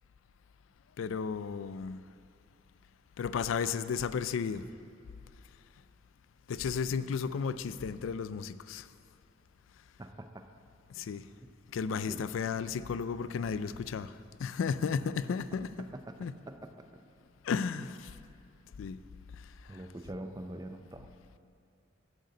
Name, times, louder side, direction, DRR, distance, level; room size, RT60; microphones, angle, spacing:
voice 1, 1.0-2.0 3.2-4.6 6.5-8.9 11.0-11.2 11.7-14.1 14.4-15.9 16.2-16.3 17.4-18.1 18.8-19.0, left 6 dB, 80° left, 14 dB, 0.3 m, -33 dB
voice 2, 10.0-10.5 10.9-11.1 11.4-11.5 12.1-12.2 16.1-16.9 19.7-21.1, right 1 dB, 20° right, 6 dB, 0.4 m, -44 dB
7.9 x 6.5 x 8.1 m, 2.5 s
head